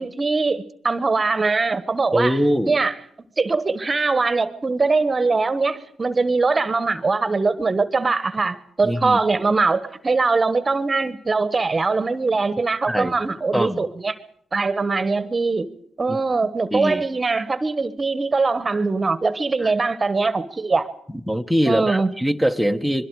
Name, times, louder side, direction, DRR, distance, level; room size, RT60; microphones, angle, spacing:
voice 1, 0.0-2.4 2.7-2.9 3.4-14.1 14.5-15.7 16.0-20.9 21.7-22.1, right 3 dB, 35° right, 1.3 m, -22 dB
voice 2, 2.1-2.8 8.8-9.2 12.9-13.2 13.5-13.8 16.1-17.0 19.6-19.7 21.3-23.0, equal, 5° left, 1.4 m, -23 dB
26.5 x 22.0 x 4.9 m
supercardioid pair, 55°, 0 cm